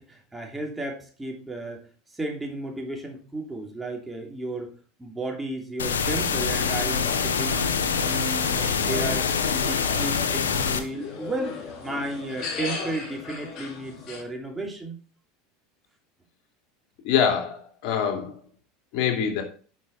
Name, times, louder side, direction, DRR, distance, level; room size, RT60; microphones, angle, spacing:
voice 1, 0.1-4.7 5.0-7.7 8.0-15.0, right 2 dB, 10° right, 2.9 m, -34 dB
sound 1, 5.8-10.8, left 6 dB, 90° left, 1.3 m, -25 dB
sound 2, 7.0-14.2, left 5 dB, 45° left, 4.4 m, -37 dB
voice 2, 17.0-18.4 18.9-19.4, left 7 dB, 60° left, 2.9 m, -24 dB
10.5 x 6.2 x 4.2 m
hypercardioid pair, 90°, 0 cm